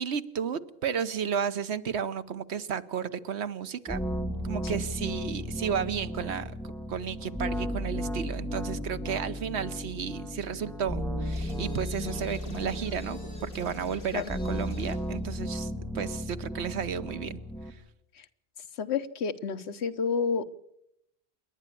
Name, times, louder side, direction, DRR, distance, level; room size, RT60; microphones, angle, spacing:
voice 1, 0.0-4.0 4.4-6.5 6.9-17.4, right 7 dB, 75° right, 12 dB, 1.2 m, -33 dB
sound 1, 3.9-17.7, equal, ahead, 1.9 m, -35 dB
sound 2, 11.3-15.1, left 2 dB, 55° left, 4.1 m, -49 dB
voice 2, 18.8-20.5, left 5 dB, 75° left, 11 dB, 1.2 m, -30 dB
27.5 x 11.0 x 8.4 m, 0.79 s
omnidirectional pair, 1.1 m